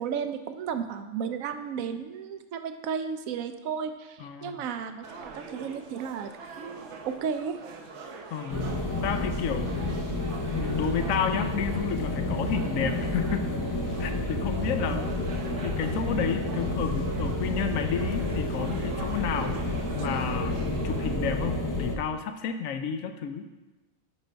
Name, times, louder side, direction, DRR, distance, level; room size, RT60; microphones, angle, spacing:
voice 1, 0.0-6.3 6.6-7.6 14.8-15.1, right 7 dB, 85° right, 8 dB, 1.0 m, -34 dB
voice 2, 4.2-4.6 8.3-9.8 10.5-13.5 14.0-15.0 15.6-23.5, left 7 dB, 85° left, 8 dB, 1.0 m, -31 dB
sound 1, 5.0-21.1, right 4 dB, 65° right, 1.0 m, -43 dB
sound 2, 8.5-22.0, left 1 dB, 30° left, 0.4 m, -30 dB
6.0 x 5.7 x 5.1 m, 1.1 s
omnidirectional pair, 1.4 m